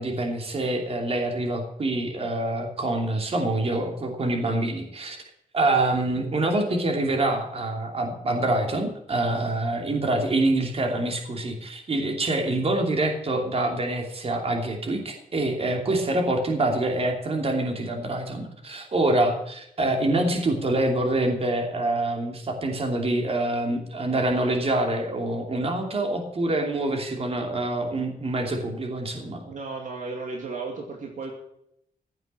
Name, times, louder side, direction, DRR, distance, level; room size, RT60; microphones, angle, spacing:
voice 1, 0.0-5.2 5.5-29.4, right 2 dB, 40° right, 3 dB, 2.9 m, -26 dB
voice 2, 29.5-31.3, right 3 dB, 60° right, 1 dB, 2.5 m, -34 dB
15.5 x 8.0 x 7.6 m, 0.76 s
wide cardioid pair, 160°, 15 cm